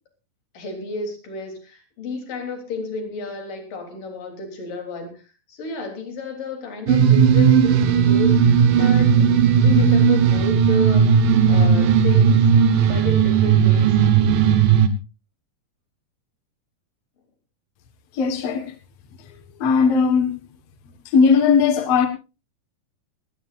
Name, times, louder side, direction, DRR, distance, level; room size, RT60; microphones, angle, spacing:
voice 1, 0.5-5.2 5.5-9.3 9.5-12.5 12.9-13.9, left 3 dB, 80° left, 5.1 m, -31 dB
sound 1, 6.9-14.9, right 7 dB, 85° right, 2.9 m, -16 dB
voice 2, 18.1-18.7 19.6-20.4 21.1-22.1, left 5 dB, 55° left, 2.4 m, -17 dB
19.0 x 17.5 x 2.6 m
omnidirectional pair, 3.8 m